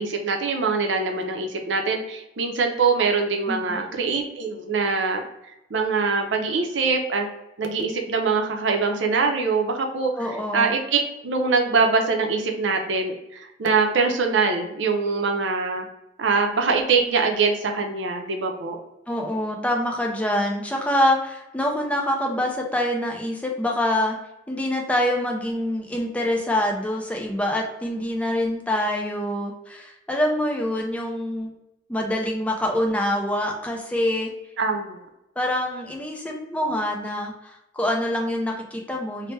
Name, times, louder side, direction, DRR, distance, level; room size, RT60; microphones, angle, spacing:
voice 1, 0.0-5.2 5.7-7.3 7.6-10.1 10.5-15.9 16.2-18.8 34.6-35.0, right 4 dB, 85° right, 3 dB, 0.5 m, -23 dB
voice 2, 3.5-3.9 10.1-10.7 19.1-24.2 24.5-31.5 31.9-34.3 35.4-39.3, left 1 dB, 5° left, 0 dB, 0.4 m, -25 dB
3.0 x 2.1 x 3.1 m, 0.90 s
head